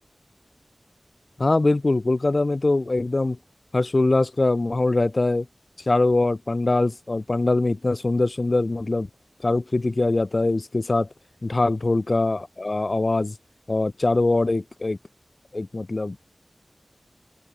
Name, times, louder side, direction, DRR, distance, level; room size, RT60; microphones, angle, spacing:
voice 1, 1.4-3.4 3.7-5.5 5.9-9.1 9.4-11.1 11.4-13.3 13.7-15.0 15.5-16.2, left 2 dB, 50° left, 4.9 m, -22 dB
open air
wide cardioid pair, 70°, 0 cm